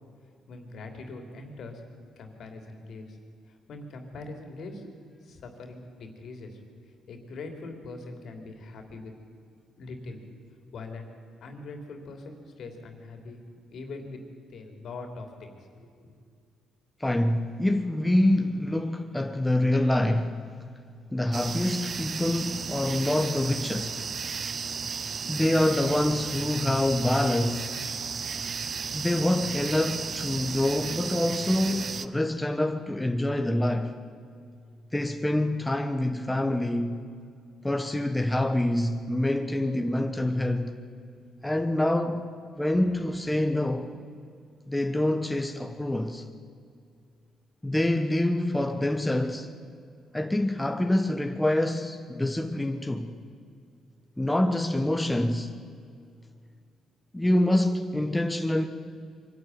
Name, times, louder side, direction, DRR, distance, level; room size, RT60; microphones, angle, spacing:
voice 1, 0.5-1.8 2.2-3.2 3.5-4.9 5.2-6.6 7.1-9.1 9.8-10.2 10.7-11.1 11.4-13.4 13.7-14.2 14.5-16.2, left 3 dB, 65° left, 3.2 m, -42 dB
voice 2, 17.0-20.4 21.1-24.1 25.3-27.7 28.9-33.9 34.9-37.1 37.6-40.8 41.4-43.9 44.7-46.2 47.6-49.5 50.1-53.1 54.2-55.5 57.1-58.7, left 1 dB, 10° left, 1.2 m, -26 dB
sound 1, 21.3-32.1, right 5 dB, 45° right, 0.8 m, -34 dB
23.5 x 12.0 x 9.4 m
cardioid pair, 90°, 0 cm